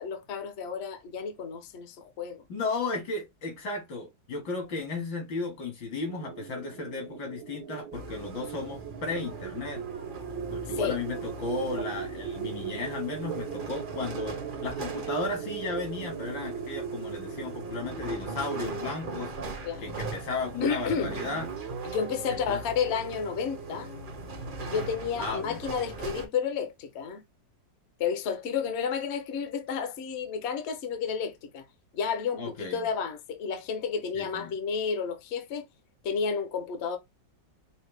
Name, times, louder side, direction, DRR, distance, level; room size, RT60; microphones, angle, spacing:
voice 1, 0.0-2.4 10.8-11.0 19.6-19.9 20.6-21.1 21.8-23.9 24.6-27.2 28.0-31.6 31.9-35.7 36.0-37.0, left 6 dB, 55° left, 0.8 m, -31 dB
voice 2, 2.5-9.8 10.5-21.5 22.5-22.6 25.2-25.6 32.4-32.8 34.1-34.5, left 3 dB, 75° left, 2.4 m, -34 dB
sound 1, 6.0-18.7, right 9 dB, 90° right, 1.4 m, -39 dB
sound 2, 7.9-26.3, right 2 dB, 45° right, 0.6 m, -40 dB
Guitar, 21.0-24.5, right 12 dB, 75° right, 1.1 m, -44 dB
5.5 x 2.2 x 3.3 m
omnidirectional pair, 2.1 m